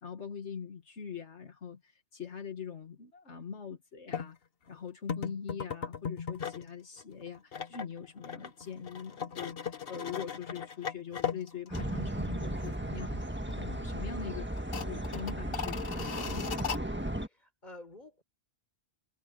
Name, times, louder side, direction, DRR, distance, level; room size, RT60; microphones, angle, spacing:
voice 1, 0.0-4.4 4.7-13.1 13.6-14.5 14.8-16.5, left 7 dB, 85° left, 2.1 m, -43 dB
sound 1, 4.1-4.3 5.1-6.7 7.0-12.3 12.6-12.7 13.1-13.7 13.9-14.0 14.6-16.8, left 7 dB, 60° left, 1.3 m, -38 dB
sound 2, 11.7-17.3, right 1 dB, 10° right, 1.6 m, -35 dB
voice 2, 17.2-18.2, left 2 dB, 40° left, 4.7 m, -50 dB
omnidirectional pair, 1.2 m